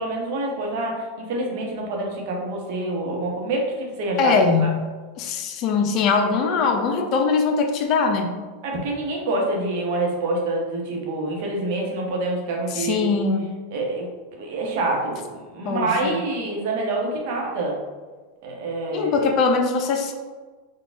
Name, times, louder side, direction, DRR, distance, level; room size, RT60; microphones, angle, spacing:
voice 1, 0.0-4.3 4.6-4.7 8.6-13.1 13.7-14.1 14.4-17.8 18.4-19.3, right 2 dB, 60° right, -1 dB, 0.9 m, -26 dB
voice 2, 4.2-4.8 5.2-8.4 12.7-13.5 15.6-16.2 18.9-20.1, left 4 dB, 50° left, 5 dB, 0.5 m, -21 dB
4.0 x 2.3 x 3.4 m, 1.4 s
hypercardioid pair, 95°, 0 cm